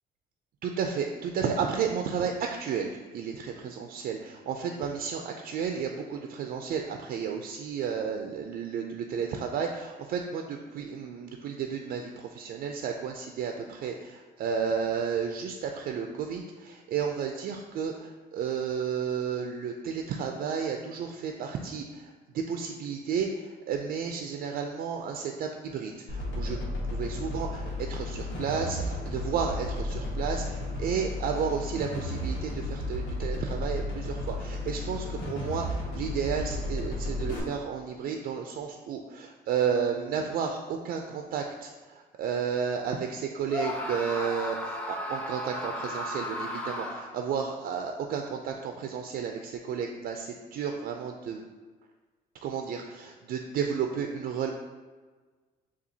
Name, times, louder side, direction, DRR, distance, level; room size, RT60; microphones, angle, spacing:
voice 1, 0.6-26.6 26.9-51.4 52.4-54.5, right 6 dB, 60° right, 3 dB, 0.4 m, -32 dB
sound 1, 26.1-37.4, left 1 dB, 90° left, 1.2 m, -33 dB
Screaming, 43.5-47.3, left 1 dB, 5° left, 0.5 m, -35 dB
7.0 x 2.4 x 2.7 m, 1.4 s
cardioid pair, 110°, 17 cm